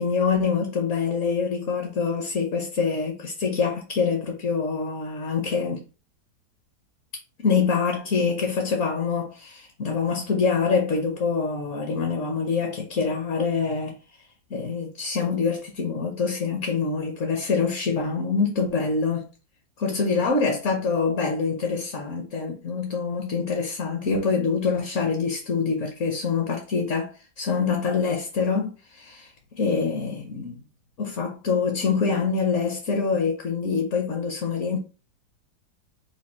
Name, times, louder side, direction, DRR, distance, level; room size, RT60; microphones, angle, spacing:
voice 1, 0.0-5.8 7.4-14.0 14.5-19.3 19.8-30.6 31.0-34.8, left 5 dB, 55° left, 1.1 m, -25 dB
5.2 x 2.2 x 4.2 m
omnidirectional pair, 1.7 m